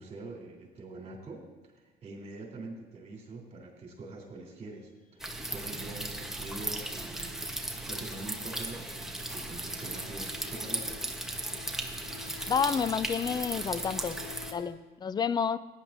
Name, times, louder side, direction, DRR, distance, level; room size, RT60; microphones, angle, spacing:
voice 1, 0.0-7.6 7.9-8.9 9.3-11.0, right 2 dB, 40° right, -1 dB, 3.4 m, -44 dB
sound 1, 5.2-14.5, right 1 dB, ahead, 1.0 m, -37 dB
sound 2, 6.3-14.7, left 10 dB, 45° left, 0.9 m, -52 dB
voice 2, 12.5-14.2 14.5-15.6, left 6 dB, 25° left, 16 dB, 0.4 m, -29 dB
16.5 x 10.0 x 2.6 m, 1.2 s
cardioid pair, 110°, 17 cm